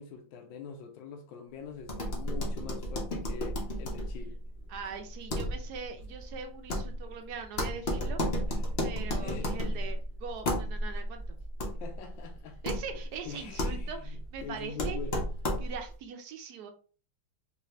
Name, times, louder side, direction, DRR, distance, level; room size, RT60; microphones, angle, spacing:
voice 1, 0.0-4.4 8.5-8.7 9.2-9.9 11.8-12.8 13.2-15.3, left 6 dB, 80° left, 1.3 m, -44 dB
sound 1, 1.8-15.9, equal, 60° left, 0.6 m, -34 dB
voice 2, 4.7-8.2 8.8-11.4 12.6-15.0 15.6-16.7, right 6 dB, 75° right, 0.9 m, -41 dB
4.0 x 2.4 x 3.1 m
omnidirectional pair, 2.2 m